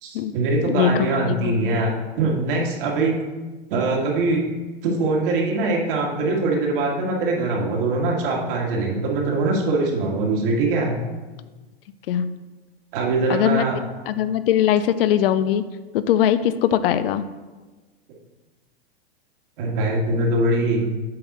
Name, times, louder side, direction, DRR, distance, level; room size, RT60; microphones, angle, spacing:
voice 1, 0.0-3.2 3.7-4.4 4.8-10.9 12.9-13.8 19.6-20.9, right 2 dB, 60° right, -1 dB, 1.9 m, -22 dB
voice 2, 0.7-1.8 12.1-12.2 13.3-13.7 14.1-15.6 15.9-17.2, left 10 dB, 65° left, 13 dB, 0.5 m, -21 dB
7.7 x 5.4 x 4.2 m, 1.2 s
hypercardioid pair, 125°, 31 cm